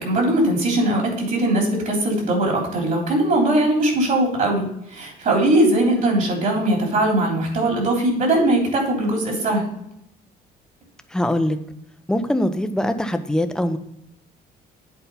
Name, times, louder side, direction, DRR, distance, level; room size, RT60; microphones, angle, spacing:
voice 1, 0.0-9.7, right 1 dB, 50° right, 0 dB, 3.3 m, -20 dB
voice 2, 5.8-6.2 11.1-11.6 12.1-13.8, left 1 dB, 5° left, 8 dB, 0.6 m, -22 dB
8.1 x 4.3 x 5.6 m, 0.77 s
cardioid pair, 110°, 17 cm